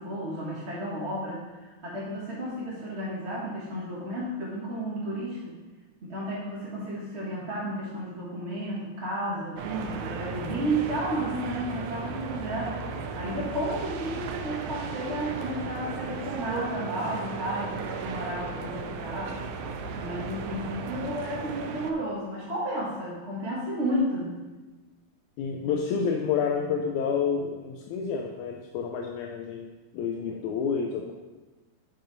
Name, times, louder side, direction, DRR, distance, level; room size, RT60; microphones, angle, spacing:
voice 1, 0.0-5.5 6.0-19.6 20.0-24.3, right 1 dB, 40° right, -7 dB, 1.0 m, -32 dB
sound 1, 9.6-21.9, right 4 dB, 85° right, 2.1 m, -36 dB
voice 2, 25.4-31.1, left 6 dB, 80° left, 2 dB, 2.0 m, -29 dB
10.5 x 5.6 x 4.0 m, 1.2 s
omnidirectional pair, 3.5 m